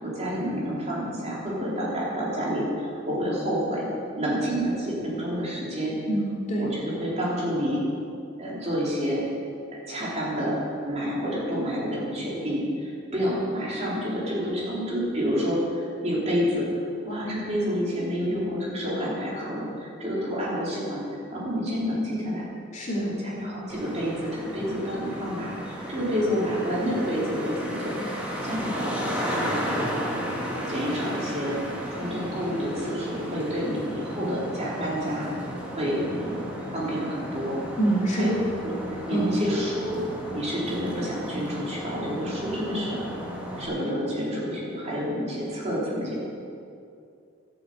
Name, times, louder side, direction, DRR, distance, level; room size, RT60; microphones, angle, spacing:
voice 1, 0.0-3.8 4.2-6.0 6.6-7.8 8.4-9.2 9.7-10.6 10.8-16.6 17.0-21.0 21.3-22.4 23.0-29.9 30.7-31.6 31.9-35.3 35.7-36.3 36.7-37.6 38.1-38.3 38.6-38.7 39.1-40.0 40.3-43.0 43.6-46.2, equal, 35° right, -6 dB, 4.2 m, -29 dB
voice 2, 6.1-6.7 22.7-23.1 37.8-38.3 39.1-39.3, right 2 dB, 40° left, -5 dB, 3.0 m, -25 dB
Traffic noise roadway noise, 23.7-43.7, equal, 5° right, 2.3 m, -34 dB
13.5 x 8.2 x 8.0 m, 2.5 s
head